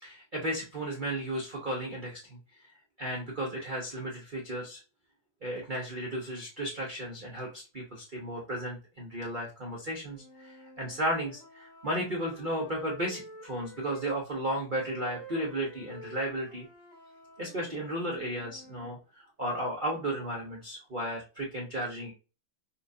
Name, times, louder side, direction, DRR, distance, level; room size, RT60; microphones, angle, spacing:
voice 1, 0.0-2.4 3.0-4.8 5.4-16.7 17.4-22.1, right 1 dB, 85° right, -3 dB, 0.4 m, -34 dB
sound 1, 10.1-14.2 14.7-18.9, right 2 dB, 70° left, 2.0 m, -50 dB
5.6 x 2.4 x 2.6 m, 0.32 s
omnidirectional pair, 2.3 m